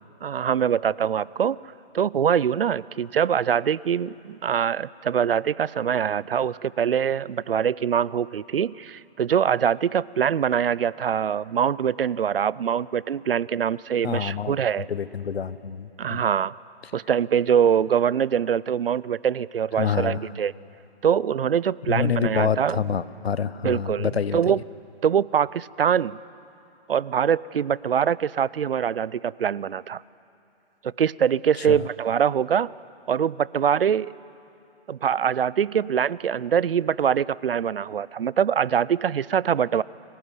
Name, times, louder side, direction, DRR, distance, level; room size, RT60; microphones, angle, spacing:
voice 1, 0.2-14.9 16.0-16.5 16.9-20.5 21.0-22.8 23.6-24.6 25.0-26.2 26.9-30.0 30.8-32.7 33.1-34.1 34.9-39.8, right 8 dB, 65° right, 22 dB, 0.5 m, -23 dB
voice 2, 14.0-16.2 19.8-20.3 21.9-24.6 31.6-31.9, left 7 dB, 70° left, 16 dB, 1.0 m, -27 dB
24.0 x 17.5 x 9.7 m, 2.7 s
hypercardioid pair, 175°, 32 cm